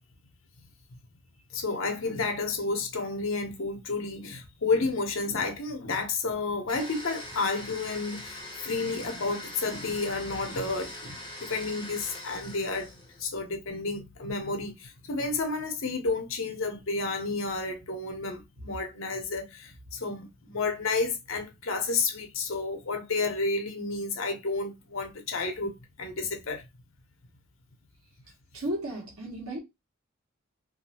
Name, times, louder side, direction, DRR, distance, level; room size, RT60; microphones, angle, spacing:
voice 1, 1.5-12.9 13.2-26.7, left 3 dB, 70° left, 0.8 m, -31 dB
Domestic sounds home sounds, 6.7-13.3, left 1 dB, 20° left, 0.9 m, -42 dB
voice 2, 28.5-29.6, right 1 dB, 85° right, 1.1 m, -34 dB
3.0 x 2.6 x 2.8 m
head